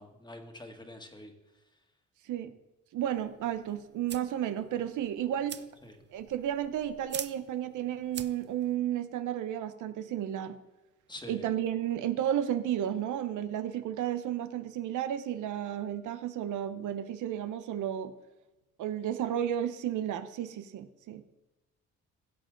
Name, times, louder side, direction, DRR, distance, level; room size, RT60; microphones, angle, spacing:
voice 1, 0.0-1.3 5.8-6.0 11.1-11.4, left 1 dB, 15° left, 4 dB, 1.7 m, -46 dB
voice 2, 2.9-5.6 6.1-10.6 11.3-18.1 18.8-21.2, right 10 dB, 80° right, 10 dB, 0.9 m, -32 dB
sound 1, 3.0-8.7, right 8 dB, 35° right, 0.6 m, -46 dB
16.0 x 7.7 x 3.9 m, 1.1 s
cardioid pair, 90°, 30 cm